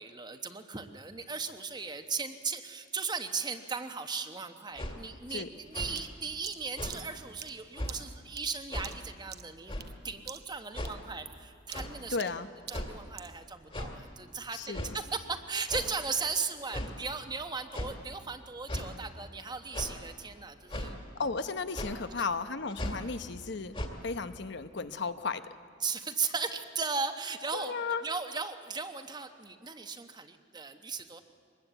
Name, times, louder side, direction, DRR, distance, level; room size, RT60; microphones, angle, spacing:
voice 1, 0.0-9.8 10.0-12.2 12.7-20.9 22.9-23.1 25.8-31.2, right 5 dB, 20° right, 8 dB, 1.0 m, -37 dB
sound 1, 4.8-5.0 5.7-6.0 6.8-7.0 7.7-7.9 8.7-8.9 9.7-9.9 10.7-11.0 11.7-11.9 12.7-13.0 13.7-13.9 14.7-14.9 15.7-15.9 16.7-16.9 17.7-17.9 18.7-18.9 19.7-20.0 20.7-20.9 21.7-22.0 22.7-23.0 23.7-23.9, left 1 dB, 30° left, 2.3 m, -36 dB
sound 2, 6.0-10.0 10.3-10.6 10.8-13.4, right 11 dB, 55° right, 0.8 m, -47 dB
voice 2, 12.1-12.5 14.5-14.9 21.1-23.8 24.0-25.4 27.5-28.0, left 4 dB, 60° left, 10 dB, 0.9 m, -34 dB
24.0 x 20.5 x 8.1 m, 2.3 s
head